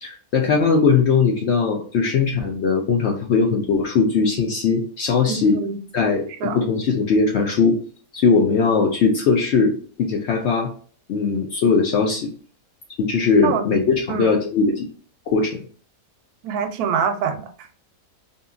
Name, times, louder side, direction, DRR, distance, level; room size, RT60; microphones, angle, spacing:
voice 1, 0.0-5.6 5.9-7.8 8.1-10.7 11.1-12.3 13.0-14.8 15.3-15.6, left 5 dB, 70° left, 1 dB, 0.6 m, -19 dB
voice 2, 5.3-5.8 6.4-6.6 13.4-13.6 14.1-14.3 16.4-17.9, right 7 dB, 85° right, 8 dB, 1.1 m, -25 dB
2.7 x 2.6 x 2.3 m, 0.43 s
omnidirectional pair, 1.6 m